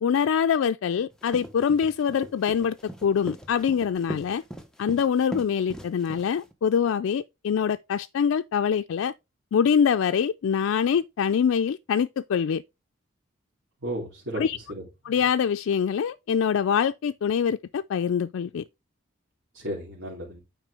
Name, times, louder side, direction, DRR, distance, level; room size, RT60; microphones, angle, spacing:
voice 1, 0.0-2.8 3.0-4.4 4.8-9.1 9.5-12.6 14.4-14.6 15.1-18.6, left 7 dB, 80° left, 0.3 m, -24 dB
sound 1, 1.1-6.5, equal, 5° left, 0.9 m, -40 dB
voice 2, 13.8-14.8 19.5-20.4, right 1 dB, 85° right, 2.9 m, -34 dB
9.0 x 4.9 x 3.4 m
head